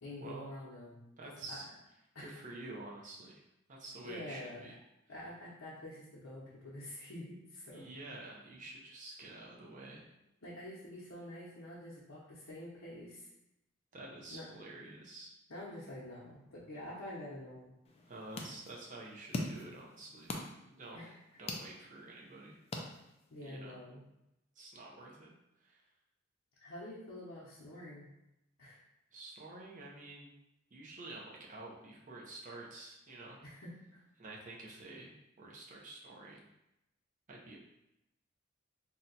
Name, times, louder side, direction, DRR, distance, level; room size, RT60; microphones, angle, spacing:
voice 1, 0.0-1.0 1.5-1.7 2.1-2.4 4.0-4.7 5.1-7.8 10.4-13.3 14.3-14.5 15.5-17.7 20.9-21.4 23.3-24.0 26.6-28.1 28.6-28.8 33.4-34.0, left 1 dB, 75° left, -7 dB, 0.7 m, -47 dB
voice 2, 1.2-1.7 2.2-3.4 3.7-4.7 7.7-10.1 13.9-15.3 18.1-20.3 20.7-21.1 21.4-22.6 23.4-23.8 24.6-25.3 25.6-25.8 29.1-30.3 30.7-33.4 34.2-36.5 37.3-37.6, right 2 dB, 40° right, -3 dB, 0.6 m, -49 dB
sound 1, 17.8-23.5, left 2 dB, 30° left, 0.4 m, -44 dB
2.8 x 2.2 x 3.9 m, 0.88 s
head